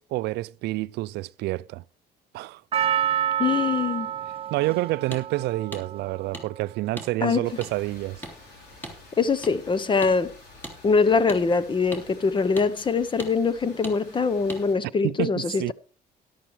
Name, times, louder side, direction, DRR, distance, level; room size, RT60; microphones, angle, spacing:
voice 1, 0.0-1.8 2.3-2.6 4.5-8.2 15.0-15.7, right 18 dB, 80° right, 0.4 m, -28 dB
Percussion, 2.7-7.1 7.7-7.8, right 10 dB, 35° right, 0.5 m, -29 dB
voice 2, 3.4-4.1 7.2-7.4 9.2-10.3 10.8-15.7, left 5 dB, 30° left, 0.9 m, -23 dB
sound 1, 5.1-5.2 5.7-5.8 6.3-6.5 7.0-7.1 7.6-7.7 8.2-8.4 8.8-9.0 9.4-9.5 10.0-10.1 10.6-10.8 11.3-11.4 11.9-12.0 12.6-12.7 13.2-13.3 13.8-14.0 14.5-14.6, equal, 10° left, 3.1 m, -37 dB
sound 2, 7.4-14.7, left 3 dB, 85° left, 4.9 m, -49 dB
13.5 x 11.0 x 3.2 m
cardioid pair, 110°, 17 cm